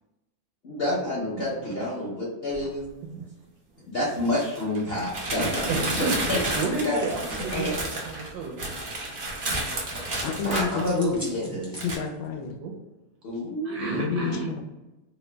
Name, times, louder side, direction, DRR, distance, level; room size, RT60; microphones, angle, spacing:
voice 1, 0.6-2.8 3.9-7.0 7.5-7.7 10.4-11.8 13.2-14.2, left 1 dB, 60° left, -7 dB, 0.6 m, -29 dB
sound 1, 2.5-2.6 4.1-11.4 11.7-12.0, right 2 dB, 55° right, 0.5 m, -31 dB
voice 2, 5.7-6.1 6.5-8.7 12.6-12.7 13.6-14.5, right 3 dB, 75° right, -1 dB, 0.9 m, -31 dB
sound 2, 6.5-8.1 10.1-12.2, equal, 10° right, 0.3 m, -43 dB
voice 3, 10.2-11.2 11.8-12.5 13.9-14.6, left 5 dB, 90° left, 3 dB, 1.4 m, -29 dB
3.7 x 2.0 x 3.2 m, 1.0 s
omnidirectional pair, 2.1 m